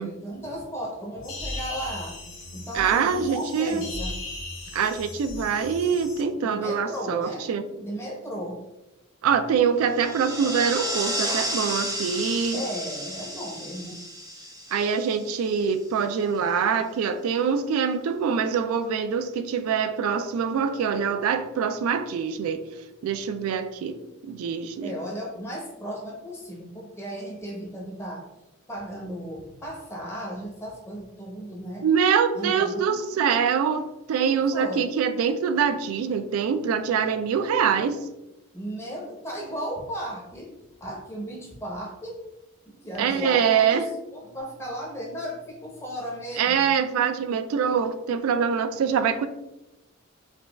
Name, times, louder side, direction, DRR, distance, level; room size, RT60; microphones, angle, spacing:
voice 1, 0.0-2.1 2.5-4.2 6.4-8.6 12.5-14.0 24.8-28.3 28.7-31.9 32.3-33.0 34.3-34.9 38.5-40.5 40.8-42.1 42.7-43.8 44.1-46.7, equal, 10° left, -3 dB, 0.7 m, -35 dB
sound 1, 1.2-6.2, left 2 dB, 65° left, 0.9 m, -37 dB
voice 2, 2.7-3.8 4.7-7.6 9.2-12.6 14.7-22.6 23.0-24.9 31.8-38.0 43.0-43.8 46.4-49.3, right 6 dB, 90° right, 14 dB, 0.3 m, -24 dB
sound 2, 9.9-15.7, equal, 15° right, 0.4 m, -32 dB
4.9 x 2.3 x 2.2 m, 0.96 s
head